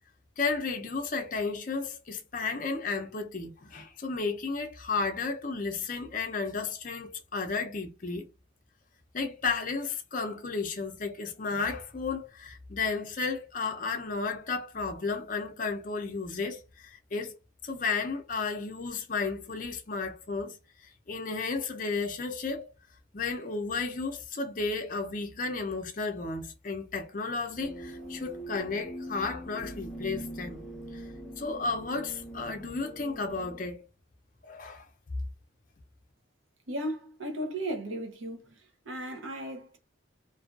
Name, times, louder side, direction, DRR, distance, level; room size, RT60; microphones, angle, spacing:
voice 1, 0.4-8.3 9.1-17.4 17.6-20.6 21.1-22.7 23.1-30.6 30.9-31.0 31.4-33.9 34.4-34.8, left 4 dB, 45° left, 0.5 m, -33 dB
sound 1, 27.6-33.6, right 1 dB, 5° right, 0.7 m, -43 dB
voice 2, 36.7-38.5 38.8-39.8, right 1 dB, 90° right, 0.8 m, -35 dB
2.6 x 2.4 x 2.4 m
head